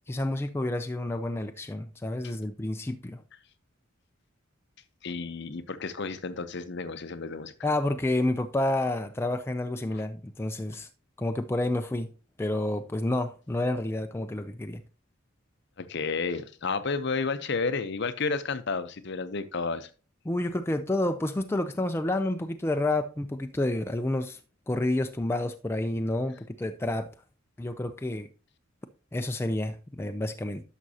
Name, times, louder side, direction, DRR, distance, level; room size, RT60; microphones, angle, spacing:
voice 1, 0.1-3.2 7.6-10.9 11.2-12.1 12.4-14.8 20.3-24.4 24.7-27.1 27.6-28.3 29.1-30.6, left 1 dB, 10° left, 0.4 m, -29 dB
voice 2, 5.0-7.5 9.9-10.0 15.8-19.9, left 4 dB, 55° left, 0.7 m, -31 dB
11.0 x 6.2 x 2.8 m
head